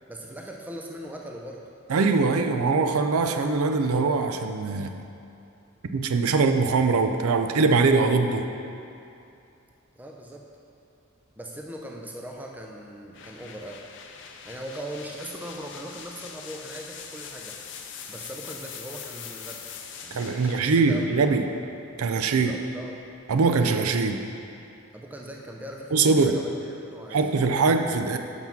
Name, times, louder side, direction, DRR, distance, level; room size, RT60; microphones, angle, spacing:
voice 1, 0.1-1.6 9.9-10.5 11.4-13.8 14.5-17.6 18.1-19.6 20.0-21.2 22.3-23.0 24.9-27.3, right 1 dB, 10° right, 0 dB, 0.5 m, -40 dB
voice 2, 1.9-4.9 5.9-8.5 20.1-21.4 22.0-22.5 23.3-24.2 25.9-26.4 27.1-28.2, right 4 dB, 85° right, 7 dB, 0.5 m, -22 dB
sound 1, 13.1-22.9, left 6 dB, 55° left, 0.5 m, -43 dB
6.0 x 5.7 x 5.9 m, 2.6 s
head